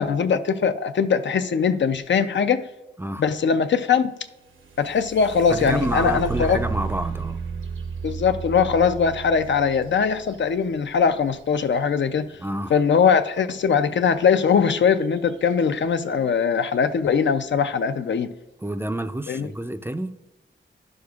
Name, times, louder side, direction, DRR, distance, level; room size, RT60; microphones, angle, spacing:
voice 1, 0.0-2.7 3.2-4.1 4.8-6.6 8.0-12.3 12.7-18.3 19.3-19.5, left 6 dB, 65° left, 0.4 m, -21 dB
sound 1, 4.5-12.3 14.4-14.5 15.0-15.5 16.1-16.2 16.7-17.1, right 6 dB, 80° right, 0.8 m, -33 dB
voice 2, 5.5-7.4 12.4-12.7 18.6-20.2, right 1 dB, 10° right, 0.4 m, -29 dB
11.0 x 6.5 x 2.3 m
wide cardioid pair, 90°, 20 cm